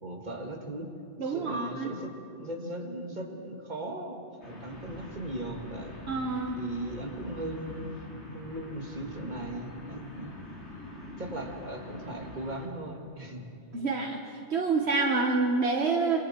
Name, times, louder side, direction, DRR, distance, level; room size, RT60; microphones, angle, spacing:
voice 1, 0.0-0.9 1.2-2.1 2.4-6.0 6.5-7.9 8.3-10.3 11.2-13.5, right 1 dB, 40° right, 1 dB, 2.2 m, -38 dB
voice 2, 1.2-1.9 6.1-6.6 13.7-14.2 14.5-16.2, right 4 dB, 65° right, 2 dB, 1.4 m, -27 dB
sound 1, 4.4-12.7, left 1 dB, 70° left, 3.5 m, -44 dB
27.0 x 23.0 x 4.4 m, 2.5 s
omnidirectional pair, 1.2 m